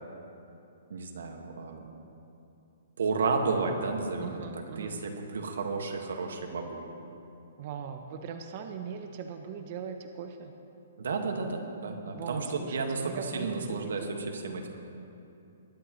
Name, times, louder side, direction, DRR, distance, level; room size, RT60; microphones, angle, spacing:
voice 1, 0.9-2.1 3.0-6.8 11.0-14.7, right 4 dB, 80° right, 3 dB, 1.6 m, -32 dB
voice 2, 4.2-5.0 7.6-10.5 12.1-14.2, right 6 dB, 30° right, 5 dB, 0.6 m, -40 dB
21.0 x 10.5 x 3.1 m, 2.7 s
hypercardioid pair, 175°, 0 cm